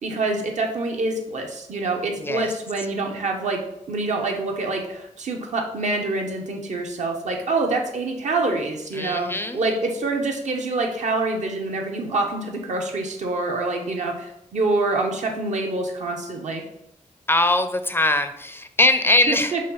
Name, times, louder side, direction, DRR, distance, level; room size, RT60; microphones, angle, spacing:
voice 1, 0.0-3.6 3.9-16.6 19.3-19.6, right 3 dB, 75° right, 2 dB, 1.2 m, -26 dB
voice 2, 2.2-2.5 8.9-9.6 17.3-19.5, left 2 dB, 20° left, 9 dB, 0.4 m, -21 dB
5.4 x 3.6 x 5.7 m, 0.79 s
wide cardioid pair, 135°, 12 cm